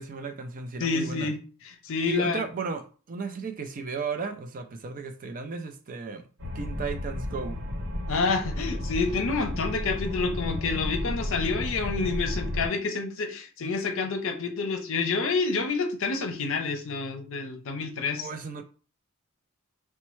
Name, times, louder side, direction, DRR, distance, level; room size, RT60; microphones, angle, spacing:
voice 1, 0.0-1.3 2.1-7.6 18.2-18.6, right 4 dB, 40° right, 0.4 m, -34 dB
voice 2, 0.8-2.4 8.1-18.3, left 4 dB, 65° left, 0.6 m, -28 dB
sound 1, 6.4-12.7, left 1 dB, 60° right, 1.0 m, -33 dB
4.2 x 2.1 x 3.0 m
head